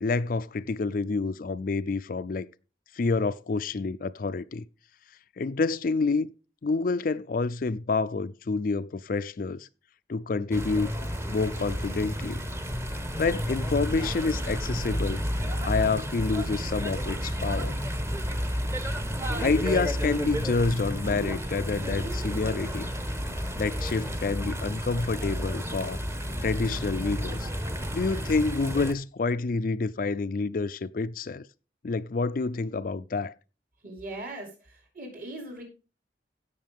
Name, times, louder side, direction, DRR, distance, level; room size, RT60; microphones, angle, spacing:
voice 1, 0.0-2.5 2.9-4.6 5.4-6.3 6.6-9.7 10.1-10.9 11.3-12.4 13.2-15.2 15.6-17.8 19.4-22.9 23.5-26.0 26.4-27.5 27.9-31.5 31.8-33.3, left 4 dB, 50° left, 0.4 m, -28 dB
sound 1, 10.5-28.9, equal, 15° right, 1.1 m, -31 dB
voice 2, 33.8-35.6, right 1 dB, 50° right, 5.1 m, -40 dB
16.5 x 6.5 x 3.5 m
head